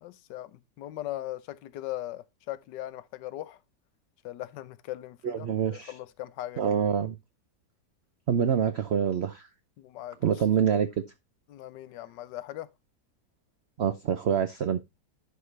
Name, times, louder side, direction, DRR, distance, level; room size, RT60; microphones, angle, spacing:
voice 1, 0.0-3.6 4.2-6.6 9.8-10.2 11.5-12.7, left 14 dB, 85° left, 1.3 m, -39 dB
voice 2, 5.2-5.9 6.6-7.2 8.3-9.5 10.2-10.9 13.8-14.8, right 8 dB, 85° right, 0.5 m, -26 dB
11.0 x 4.7 x 3.2 m
omnidirectional pair, 1.9 m